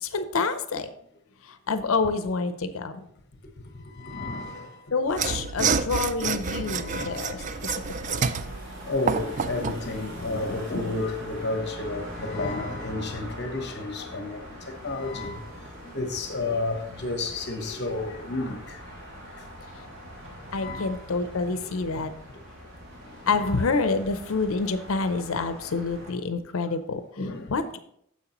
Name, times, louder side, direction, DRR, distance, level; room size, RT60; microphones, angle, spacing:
voice 1, 0.0-0.9 1.7-3.0 4.9-7.4 20.5-22.1 23.3-27.0 27.5-27.8, left 4 dB, 75° left, 0.6 m, -27 dB
voice 2, 3.7-5.3 6.4-7.7 8.0-8.5 8.8-15.6 15.8-18.8 19.2-19.5 20.4-21.0 21.4-21.5 23.0-23.6 27.2-27.5, left 2 dB, 50° left, 1.0 m, -32 dB
Mechanisms / Sawing, 5.1-9.8, right 5 dB, 35° right, 0.4 m, -28 dB
sound 1, 6.8-26.1, equal, 60° right, 2.8 m, -42 dB
9.8 x 7.3 x 3.0 m
head